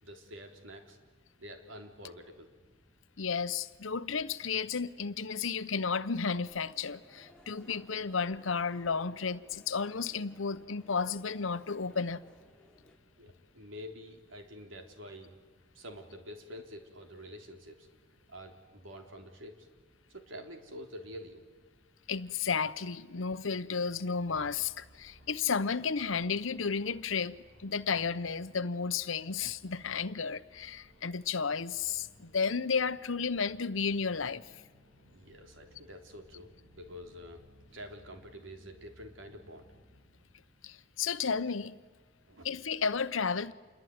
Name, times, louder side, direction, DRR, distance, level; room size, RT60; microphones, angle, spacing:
voice 1, 0.0-1.0 1.4-2.5 13.2-15.3 15.7-17.9 18.3-19.7 20.1-21.4 35.1-37.5 37.7-39.7 42.2-42.5, equal, 80° right, 3.6 m, -47 dB
voice 2, 3.2-12.2 22.1-34.5 40.6-41.7 42.4-43.5, left 5 dB, 80° left, 0.9 m, -33 dB
sound 1, 6.4-13.0, left 1 dB, 5° left, 3.4 m, -60 dB
sound 2, 24.1-40.3, equal, 55° right, 6.5 m, -61 dB
28.0 x 22.0 x 9.5 m
head